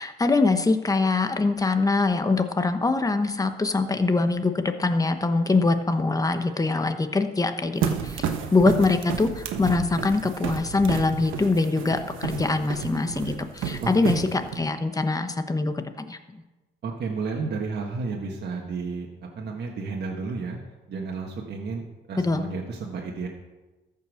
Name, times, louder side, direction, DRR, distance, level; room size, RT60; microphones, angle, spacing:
voice 1, 0.0-16.2 22.2-22.4, left 3 dB, 15° left, 8 dB, 1.1 m, -23 dB
sound 1, 7.8-14.6, right 7 dB, 90° right, 1.1 m, -31 dB
voice 2, 13.8-14.2 16.8-19.1 19.3-20.6 20.9-23.3, right 4 dB, 55° right, -1 dB, 1.7 m, -32 dB
14.0 x 5.6 x 6.4 m, 1.1 s
cardioid pair, 90°, 20 cm